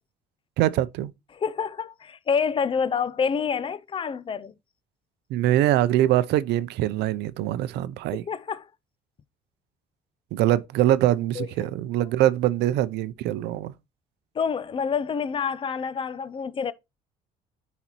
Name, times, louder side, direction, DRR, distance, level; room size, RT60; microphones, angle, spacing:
voice 1, 0.6-1.1 5.3-8.2 10.3-13.7, right 13 dB, 80° right, 0.5 m, -23 dB
voice 2, 1.3-4.5 8.1-8.7 11.4-11.5 14.3-16.7, left 6 dB, 30° left, 0.5 m, -27 dB
9.8 x 4.1 x 3.0 m
cardioid pair, 110°, 17 cm